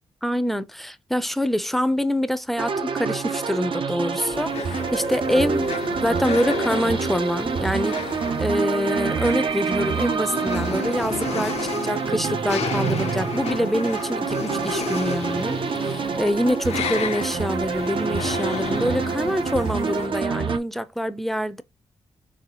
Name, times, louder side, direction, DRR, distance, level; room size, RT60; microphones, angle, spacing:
voice 1, 0.2-5.7 6.0-8.0 8.4-21.6, equal, ahead, 0.5 m, -25 dB
sound 1, 2.6-20.6, right 5 dB, 50° right, 0.5 m, -27 dB
sound 2, 4.3-20.1, left 7 dB, 70° left, 0.6 m, -33 dB
4.2 x 3.2 x 2.8 m
cardioid pair, 65°, 11 cm